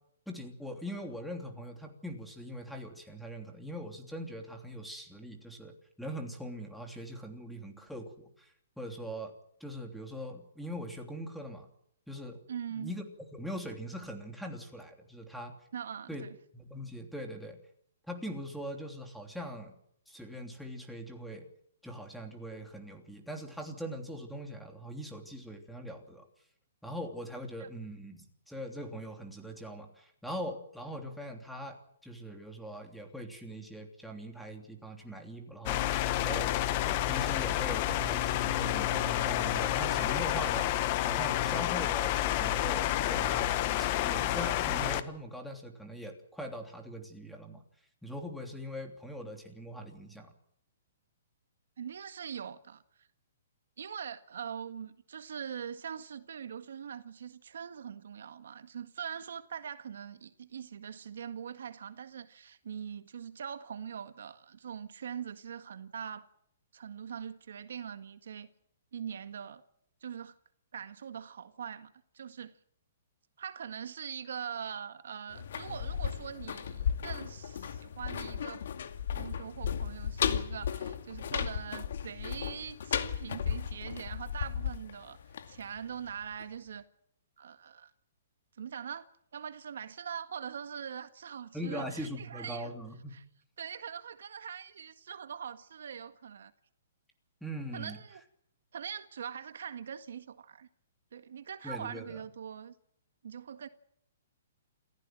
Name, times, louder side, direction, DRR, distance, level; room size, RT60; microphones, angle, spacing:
voice 1, 0.3-9.3 9.6-11.7 12.1-12.4 12.8-13.0 13.3-15.5 16.1-16.2 16.5-17.6 18.1-19.7 20.1-21.5 21.8-26.2 26.8-36.0 36.2-40.7 41.0-43.5 43.8-47.6 48.0-50.3 91.5-93.2 97.4-98.0 101.6-102.2, equal, ahead, 3.1 m, -41 dB
voice 2, 12.5-12.9 15.7-16.4 27.6-27.7 51.8-52.8 53.8-66.3 66.7-68.5 68.9-69.6 70.0-70.4 70.7-72.5 73.4-78.6 79.2-85.2 85.5-86.9 87.4-87.9 88.6-89.1 89.3-92.7 93.1-93.2 93.6-96.5 97.7-98.2 98.7-100.7 101.1-102.7 103.2-103.7, right 8 dB, 75° right, 1.7 m, -42 dB
sound 1, 35.7-45.0, left 13 dB, 35° left, 1.4 m, -29 dB
sound 2, 75.3-86.1 86.4-86.5, left 8 dB, 65° left, 2.2 m, -35 dB
28.0 x 15.0 x 7.7 m
hypercardioid pair, 155°, 0 cm